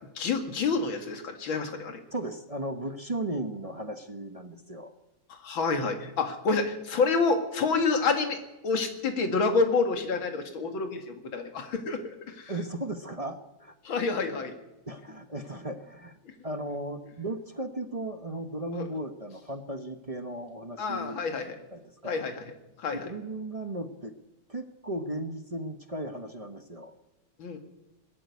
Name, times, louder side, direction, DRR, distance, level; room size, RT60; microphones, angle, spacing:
voice 1, 0.2-2.0 5.3-8.4 8.6-12.0 12.3-12.5 13.8-14.5 18.7-18.9 20.8-21.6 22.1-22.4 22.8-23.1 27.4-27.6, left 4 dB, 85° left, 6 dB, 2.8 m, -28 dB
voice 2, 2.1-4.9 12.5-13.8 14.9-16.2 16.4-21.2 21.7-22.2 22.9-24.1 24.5-26.9, right 1 dB, 25° right, 7 dB, 0.8 m, -36 dB
20.0 x 13.5 x 9.5 m, 0.99 s
omnidirectional pair, 2.1 m